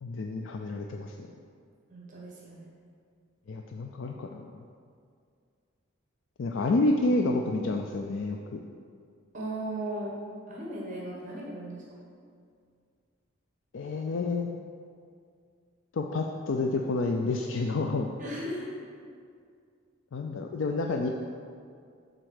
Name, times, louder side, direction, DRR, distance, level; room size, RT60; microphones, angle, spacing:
voice 1, 0.0-1.1 3.5-4.6 6.4-8.6 13.7-14.5 15.9-18.1 20.1-21.1, left 2 dB, 65° left, 2 dB, 0.4 m, -29 dB
voice 2, 1.9-2.7 9.3-10.1 10.5-11.8 18.2-18.7, right 1 dB, 40° right, -5 dB, 1.3 m, -36 dB
7.7 x 4.0 x 6.4 m, 2.2 s
head